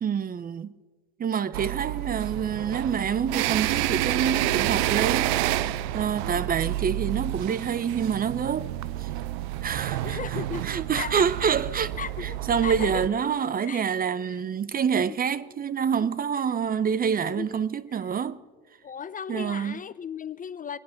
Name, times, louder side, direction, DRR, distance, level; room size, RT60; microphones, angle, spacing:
voice 1, 0.0-0.7 1.2-5.7 5.9-8.7 9.0-9.1 9.6-10.2 10.6-12.0 12.2-18.4 19.3-19.8, right 7 dB, 25° right, 0.7 m, -27 dB
sound 1, 1.5-13.1, right 14 dB, 70° right, 0.7 m, -29 dB
voice 2, 10.0-10.7 11.0-11.3 12.0-13.1 13.6-13.8 14.2-14.4 15.1-15.2 16.0-16.1 17.1-17.5 17.9-18.2 18.8-20.8, left 7 dB, 25° left, 0.6 m, -36 dB
24.5 x 10.5 x 5.8 m
hypercardioid pair, 85°, 32 cm